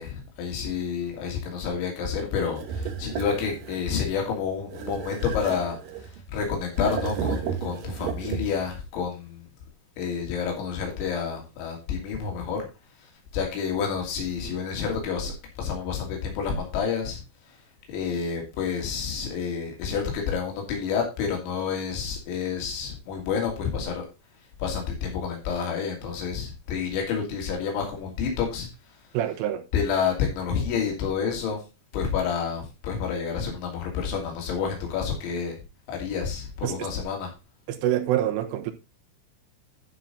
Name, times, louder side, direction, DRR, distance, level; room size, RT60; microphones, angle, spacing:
voice 1, 0.0-5.8 6.0-9.4 10.0-12.6 13.3-17.2 17.9-24.1 24.6-28.7 29.7-31.6 31.9-35.6 35.9-37.3, left 6 dB, 70° left, 5.0 m, -29 dB
sound 1, 2.6-3.9 4.7-6.2 6.7-8.7, right 6 dB, 65° right, 2.3 m, -33 dB
voice 2, 29.1-29.6 36.6-36.9 37.7-38.7, right 12 dB, 90° right, 3.7 m, -26 dB
11.5 x 6.0 x 4.0 m
omnidirectional pair, 5.6 m